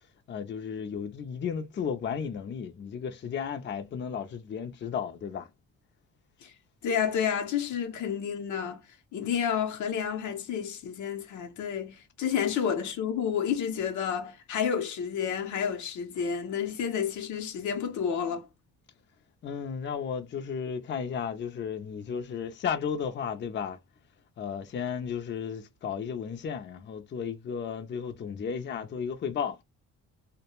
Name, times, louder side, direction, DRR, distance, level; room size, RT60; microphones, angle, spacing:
voice 1, 0.3-5.5 19.4-23.8 24.4-29.6, left 7 dB, 40° left, 0.5 m, -34 dB
voice 2, 6.8-8.8 9.1-18.5, left 8 dB, 75° left, 0.7 m, -30 dB
2.2 x 2.1 x 2.9 m
cardioid pair, 90°, 30 cm